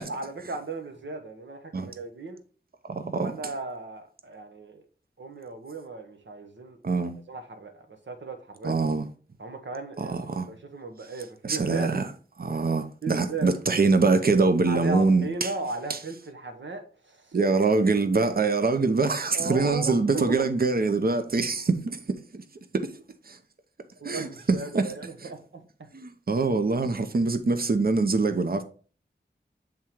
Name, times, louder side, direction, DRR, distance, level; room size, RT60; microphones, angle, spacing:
voice 1, 0.0-2.4 3.2-4.8 5.2-6.8 7.3-8.8 9.4-12.0 13.0-13.6 14.7-17.3 19.3-20.5 24.0-25.9, right 3 dB, 80° right, 1.1 m, -36 dB
voice 2, 2.9-3.3 6.8-7.2 8.6-9.0 10.0-10.5 11.4-12.1 12.4-15.5 15.9-16.0 17.3-22.4 22.7-22.9 23.3-23.4 24.0-24.9 25.9-28.6, right 3 dB, 55° right, 0.7 m, -24 dB
7.4 x 3.7 x 4.5 m
wide cardioid pair, 50°, 19 cm